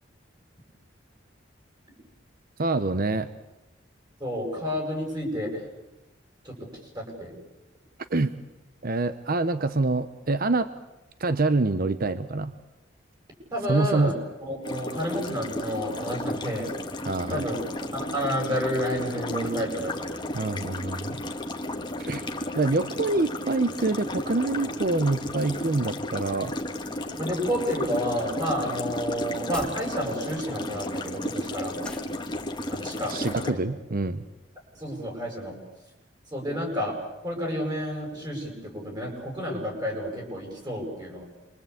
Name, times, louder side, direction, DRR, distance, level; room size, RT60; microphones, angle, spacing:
voice 1, 2.6-3.3 8.1-8.3 8.8-10.7 11.2-12.5 13.7-14.1 17.0-17.5 20.3-21.2 22.0-22.2 22.5-26.5 33.1-34.2, right 3 dB, 50° right, 12 dB, 0.9 m, -26 dB
voice 2, 4.2-5.6 6.4-6.5 6.9-7.3 13.5-16.7 17.3-17.6 17.9-20.6 27.2-31.8 32.7-33.1 33.5-33.6 34.7-35.6 36.3-36.9 37.2-41.2, equal, 20° right, 1 dB, 7.9 m, -30 dB
sound 1, 14.6-33.5, left 1 dB, 25° left, 2.0 m, -34 dB
sound 2, 29.5-29.9 31.8-32.2, left 1 dB, 5° left, 2.6 m, -39 dB
28.0 x 24.0 x 8.6 m, 1.0 s
head